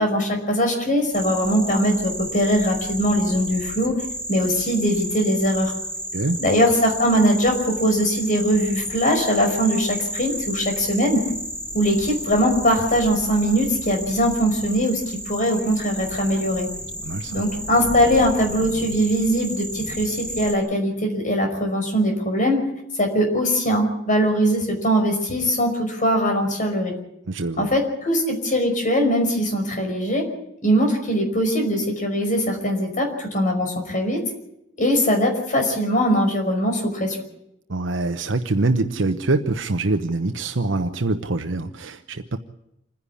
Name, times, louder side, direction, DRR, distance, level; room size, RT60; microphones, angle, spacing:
voice 1, 0.0-3.9 4.3-5.7 6.4-11.2 11.7-16.7 17.3-22.6 23.0-26.9 27.6-30.2 30.6-34.2 34.8-37.2, equal, 45° left, 3 dB, 5.3 m, -21 dB
sound 1, 1.1-20.5, equal, 5° left, 2.5 m, -32 dB
voice 2, 17.0-17.4 27.3-27.8 37.7-42.4, right 2 dB, 75° right, 7 dB, 0.9 m, -24 dB
27.0 x 10.5 x 10.0 m, 0.81 s
head